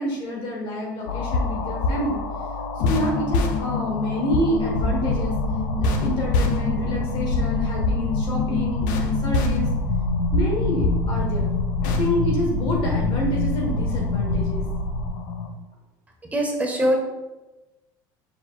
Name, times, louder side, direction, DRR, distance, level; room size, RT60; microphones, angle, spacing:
voice 1, 0.0-2.2 2.8-5.3 5.8-9.7 10.3-11.5 11.8-14.6 16.8-16.9, equal, 55° left, -1 dB, 1.2 m, -28 dB
sound 1, 1.1-15.5, left 4 dB, 75° left, 0.6 m, -26 dB
sound 2, 4.6-15.1, equal, 85° right, 0.8 m, -28 dB
voice 2, 16.3-17.0, right 1 dB, 15° right, 1 dB, 1.1 m, -22 dB
5.1 x 4.5 x 2.2 m, 1.1 s
supercardioid pair, 90°, 10 cm